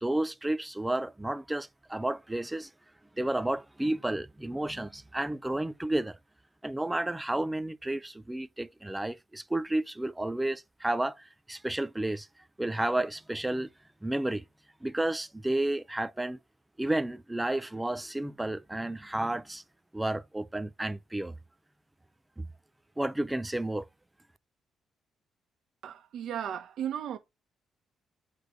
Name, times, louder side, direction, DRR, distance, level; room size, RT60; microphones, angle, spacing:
voice 1, 0.0-2.7 3.2-6.2 6.6-12.3 12.6-13.7 14.0-14.4 14.8-16.4 16.8-19.6 19.9-21.3 22.4-22.5 23.0-23.9, right 1 dB, 10° right, 0.6 m, -31 dB
voice 2, 25.8-27.2, right 9 dB, 70° right, 1.5 m, -35 dB
8.2 x 3.4 x 5.1 m
cardioid pair, 90°, 0 cm